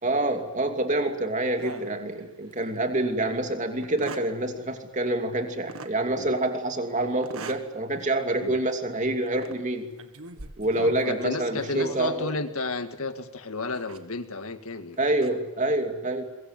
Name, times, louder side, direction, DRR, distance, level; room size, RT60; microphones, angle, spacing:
voice 1, 0.0-9.9 10.6-12.3 15.0-16.2, right 2 dB, 35° right, 5 dB, 2.7 m, -27 dB
sound 1, 1.6-2.6 3.1-3.2 3.8-4.3 5.7-6.0 7.2-7.7 8.2-8.4 9.3-9.6 10.0-12.3 13.7-14.0 14.9-15.3, right 3 dB, 70° right, 1.7 m, -42 dB
voice 2, 10.8-15.0, left 3 dB, 70° left, 8 dB, 1.9 m, -32 dB
23.0 x 22.0 x 9.2 m, 0.97 s
head